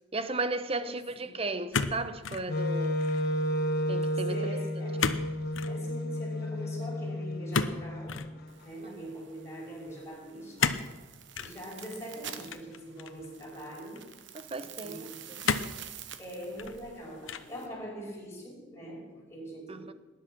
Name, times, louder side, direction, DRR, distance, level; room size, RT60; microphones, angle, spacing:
voice 1, 0.1-3.0 3.9-4.4 14.3-15.4 19.7-19.9, right 2 dB, 30° right, 0.8 m, -35 dB
voice 2, 0.8-1.3 4.3-5.2 5.6-8.3 8.6-10.8 11.4-14.1 14.5-15.5 16.2-19.9, equal, 15° left, 5.3 m, -43 dB
sound 1, 1.7-2.5 2.8-3.3 5.0-5.3 5.5-5.8 7.5-8.3 10.6-10.9 11.3-11.5 12.5-13.3 14.0-14.1 15.4-15.8 16.4-16.9 17.3-17.6, left 5 dB, 80° left, 0.9 m, -31 dB
Wind instrument woodwind instrument, 2.5-8.5, left 1 dB, 50° left, 1.1 m, -32 dB
sound 2, 8.5-17.7, right 9 dB, 65° right, 1.0 m, -48 dB
19.0 x 10.5 x 6.1 m
head